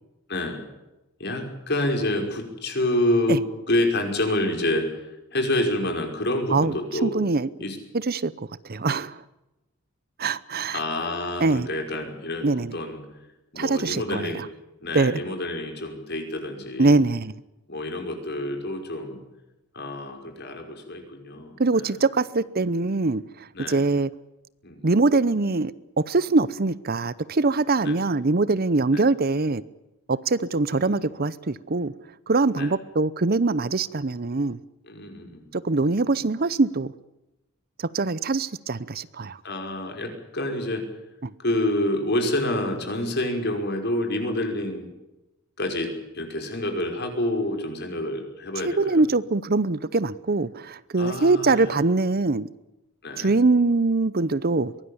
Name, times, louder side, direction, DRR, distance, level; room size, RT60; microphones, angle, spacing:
voice 1, 0.3-0.6 1.2-7.2 7.6-7.8 10.7-13.0 13.5-14.4 14.8-16.9 17.7-19.2 19.7-22.0 23.5-23.8 24.6-24.9 27.8-28.1 28.9-29.0 30.7-31.1 32.5-32.7 34.8-35.5 35.8-36.1 39.4-40.9 41.4-44.9 45.6-49.0 51.0-51.8 53.0-53.3, left 1 dB, 50° left, 5 dB, 5.5 m, -28 dB
voice 2, 7.0-7.5 7.9-8.3 8.6-9.2 10.2-10.8 11.4-11.7 12.4-12.8 13.6-14.5 14.9-15.2 16.8-17.3 21.6-24.1 24.8-25.7 26.0-29.6 30.1-31.9 32.3-34.6 35.5-36.9 37.8-39.4 41.2-41.3 48.6-52.5 53.2-54.7, right 3 dB, 45° right, 18 dB, 0.8 m, -23 dB
23.5 x 18.5 x 8.7 m, 0.97 s
head